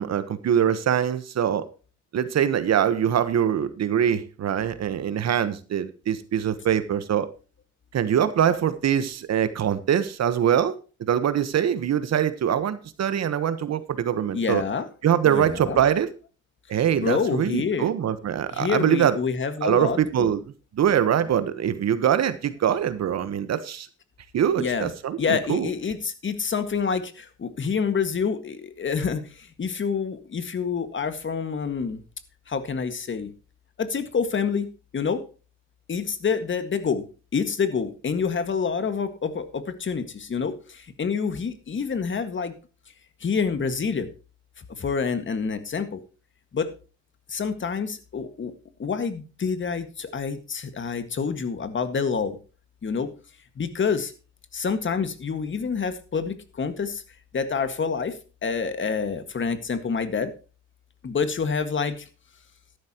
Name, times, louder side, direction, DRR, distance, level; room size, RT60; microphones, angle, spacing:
voice 1, 0.0-1.6 2.1-7.3 7.9-10.7 11.1-14.6 15.0-16.1 16.7-19.2 19.6-20.4 20.8-23.9 24.3-25.7, right 9 dB, 60° right, 12 dB, 1.2 m, -23 dB
voice 2, 14.3-14.9 15.2-15.8 17.0-17.9 18.5-20.3 24.6-24.9 25.2-32.0 32.5-33.3 33.8-35.2 35.9-37.0 37.3-42.5 43.2-44.1 44.6-46.0 46.5-46.7 47.3-48.5 48.8-52.4 52.8-53.1 53.5-54.1 54.5-57.0 57.3-60.3 61.0-62.1, left 5 dB, 40° left, 10 dB, 1.8 m, -27 dB
13.0 x 11.5 x 3.0 m, 0.35 s
cardioid pair, 90°, 30 cm